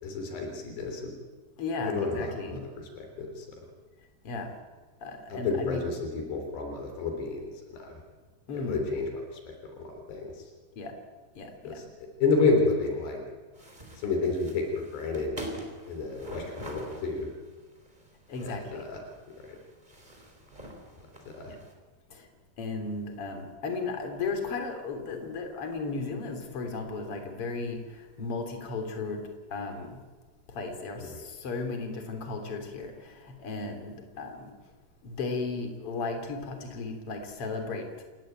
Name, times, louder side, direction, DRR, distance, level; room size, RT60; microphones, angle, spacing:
voice 1, 0.0-1.1 1.8-3.5 5.3-7.5 7.7-7.9 8.5-9.1 9.5-10.3 11.6-11.8 12.2-13.2 14.0-15.3 15.9-17.3 18.4-19.0 21.3-21.5, left 3 dB, 85° left, 4 dB, 5.7 m, -30 dB
voice 2, 1.6-2.6 4.2-4.5 5.0-5.9 8.5-8.8 10.8-10.9 11.4-11.8 18.3-18.8 21.5-21.6 22.1-22.3 22.6-30.0 30.5-34.5 35.0-38.0, left 3 dB, 35° left, 5 dB, 3.7 m, -35 dB
sound 1, 13.5-21.7, right 1 dB, 10° right, 3.7 m, -45 dB
28.0 x 16.5 x 9.2 m, 1.3 s
omnidirectional pair, 4.7 m